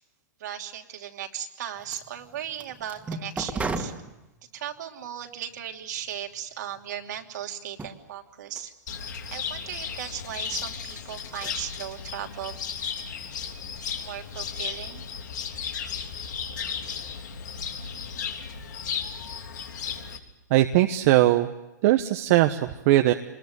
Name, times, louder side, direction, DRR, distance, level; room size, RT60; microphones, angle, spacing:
voice 1, 0.4-3.9 4.5-8.7 9.3-12.5 14.0-15.1, right 10 dB, 70° right, 3 dB, 2.9 m, -37 dB
sound 1, 1.7-4.8 5.5-6.3 6.7-7.4 7.7-8.0 8.5-8.6 9.3-9.4 10.3-10.7 11.0-11.6, right 3 dB, 10° right, 2.2 m, -36 dB
Cricket, 8.9-20.2, left 7 dB, 75° left, 3.5 m, -35 dB
voice 2, 20.5-21.5 21.8-23.1, right 15 dB, 50° right, 6 dB, 1.2 m, -20 dB
26.0 x 21.0 x 8.1 m, 0.97 s
hypercardioid pair, 125°, 10 cm